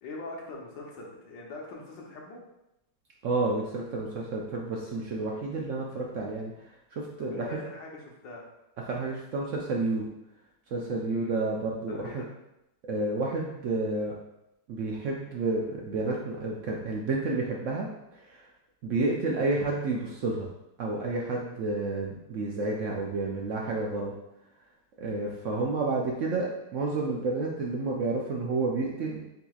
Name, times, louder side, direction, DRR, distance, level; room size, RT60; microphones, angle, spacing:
voice 1, 0.0-2.4 7.2-8.4 11.1-11.4 11.9-12.3 19.0-19.2 25.0-25.3, left 3 dB, 85° left, -2 dB, 1.7 m, -42 dB
voice 2, 3.2-6.5 6.9-7.4 8.9-10.1 10.7-12.2 12.9-14.1 14.7-18.4 18.8-20.5 20.8-24.1 25.0-29.3, right 3 dB, 75° right, -2 dB, 0.7 m, -30 dB
7.7 x 2.8 x 2.4 m, 0.87 s
omnidirectional pair, 1.9 m